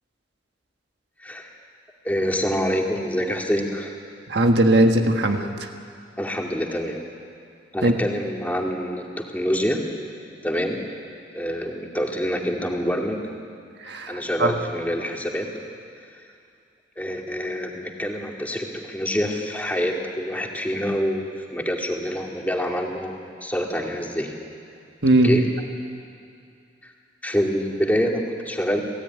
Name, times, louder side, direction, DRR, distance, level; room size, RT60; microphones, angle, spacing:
voice 1, 2.0-3.9 6.2-7.0 7.7-9.8 10.4-10.9 11.3-13.2 14.1-15.5 17.0-24.3 25.2-25.4 27.2-28.8, equal, 10° left, 0 dB, 2.4 m, -26 dB
voice 2, 4.3-5.4 7.8-7.9 13.8-14.5 25.0-25.4, right 1 dB, 65° right, 4 dB, 1.6 m, -18 dB
26.5 x 16.5 x 9.5 m, 2.4 s
head